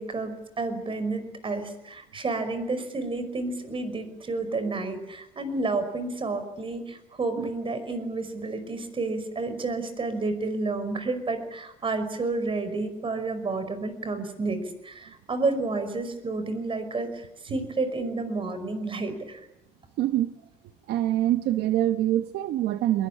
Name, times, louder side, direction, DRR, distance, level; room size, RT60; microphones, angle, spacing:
voice 1, 0.0-19.4, right 3 dB, 30° right, 10 dB, 5.4 m, -30 dB
voice 2, 20.0-20.3 20.9-23.1, right 13 dB, 80° right, 9 dB, 1.1 m, -25 dB
22.5 x 22.0 x 8.8 m, 0.87 s
cardioid pair, 110°, 17 cm